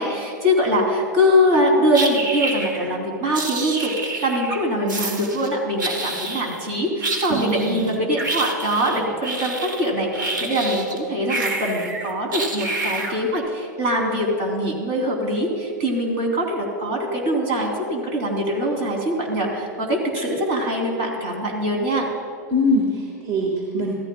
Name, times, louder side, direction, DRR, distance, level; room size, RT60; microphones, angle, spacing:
voice 1, 0.0-3.9 4.2-22.1, equal, 55° right, 0 dB, 3.3 m, -23 dB
sound 1, 1.9-2.9 3.3-4.6 4.9-5.5 5.8-6.7 7.0-11.0 11.3-13.4, right 2 dB, 80° right, 1.3 m, -28 dB
voice 2, 7.3-7.9 22.5-23.9, left 1 dB, 40° right, -1 dB, 1.8 m, -23 dB
16.0 x 14.0 x 2.3 m, 2.2 s
hypercardioid pair, 100°, 10 cm